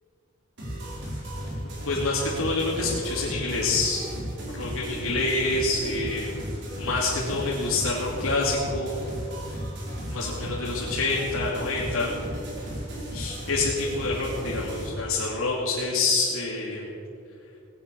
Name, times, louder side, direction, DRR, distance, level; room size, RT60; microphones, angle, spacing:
sound 1, 0.6-14.9, equal, 60° right, 4.3 m, -35 dB
voice 1, 1.6-4.1 4.5-6.4 6.8-9.0 10.1-12.1 13.1-16.9, left 3 dB, 85° left, -6 dB, 2.9 m, -27 dB
18.5 x 10.0 x 7.1 m, 2.6 s
head